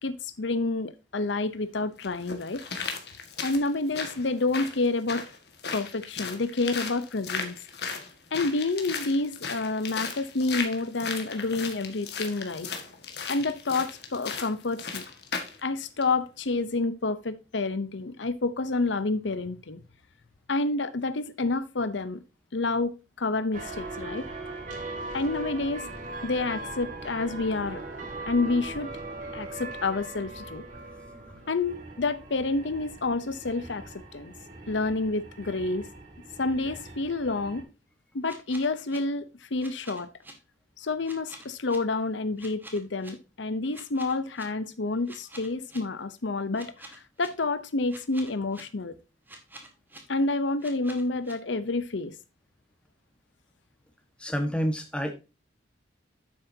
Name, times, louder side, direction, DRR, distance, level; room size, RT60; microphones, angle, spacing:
voice 1, 0.0-2.6 3.4-5.3 5.7-7.5 8.3-12.7 13.3-15.0 15.6-19.8 20.5-22.2 22.5-24.3 25.1-25.9 26.2-27.8 28.3-28.9 29.3-30.6 31.5-33.8 34.1-34.3 34.7-35.9 36.4-37.6 38.1-40.1 40.8-48.9 50.1-52.1, left 3 dB, 80° left, 0.8 m, -29 dB
sound 1, 1.2-1.3 2.0-15.6 16.0-16.1, left 5 dB, 60° left, 1.8 m, -36 dB
sound 2, 23.5-37.6, right 2 dB, 45° right, 2.4 m, -40 dB
sound 3, 38.2-39.0 39.6-40.3 41.0-41.8 42.4-43.1 43.7-44.4 45.1-45.8 46.5-47.3 47.9-48.6 49.3-50.0 50.6-51.3, right 1 dB, 10° right, 2.0 m, -46 dB
voice 2, 54.2-55.1, equal, 5° left, 1.5 m, -29 dB
9.8 x 7.9 x 2.8 m
head